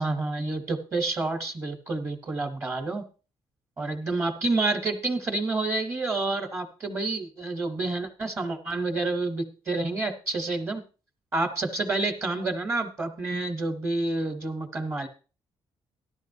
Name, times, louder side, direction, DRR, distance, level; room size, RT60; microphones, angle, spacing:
voice 1, 0.0-3.0 3.8-10.8 11.3-15.1, right 2 dB, 25° right, 4 dB, 0.9 m, -29 dB
14.0 x 11.5 x 2.7 m, 0.35 s
cardioid pair, 180°, 10 cm